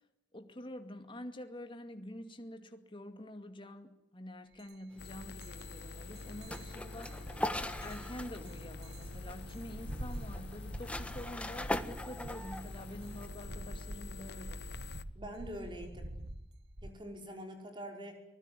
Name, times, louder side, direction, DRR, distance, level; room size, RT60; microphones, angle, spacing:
voice 1, 0.3-7.2 7.6-14.6, left 1 dB, 30° left, 2.3 m, -47 dB
sound 1, 4.6-4.7 5.1-16.9, right 1 dB, 65° right, 1.9 m, -47 dB
sound 2, 5.0-15.0, left 3 dB, 65° left, 1.0 m, -47 dB
sound 3, 5.0-13.3, left 1 dB, 5° left, 1.4 m, -42 dB
voice 2, 15.1-16.1 16.8-18.2, equal, 25° right, 5.4 m, -44 dB
24.0 x 20.5 x 9.9 m
head